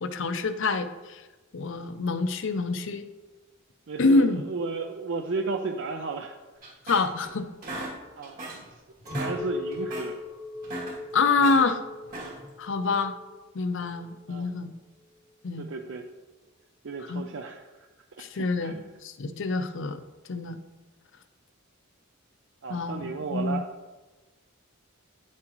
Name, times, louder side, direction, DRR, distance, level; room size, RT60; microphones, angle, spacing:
voice 1, 0.0-1.2 1.5-3.1 4.0-4.4 6.9-7.5 11.1-11.8 12.6-13.1 13.5-14.7 15.4-15.7 17.1-17.2 18.2-18.7 19.0-20.0 20.3-20.6 22.7-23.6, left 3 dB, 65° left, 11 dB, 0.6 m, -26 dB
voice 2, 3.9-6.4 8.2-8.8 9.2-10.2 14.3-14.6 15.6-16.1 16.8-17.7 18.2-18.8 22.6-23.7, right 3 dB, 65° right, 4 dB, 0.5 m, -34 dB
sound 1, 6.6-7.3 7.6-8.7 9.0-9.4 9.7-10.1 10.5-11.6 12.0-12.5, right 1 dB, 45° right, 2.4 m, -37 dB
Chink clink, 9.1-14.5, left 2 dB, 15° right, 1.1 m, -40 dB
9.9 x 7.4 x 3.0 m, 1.2 s
head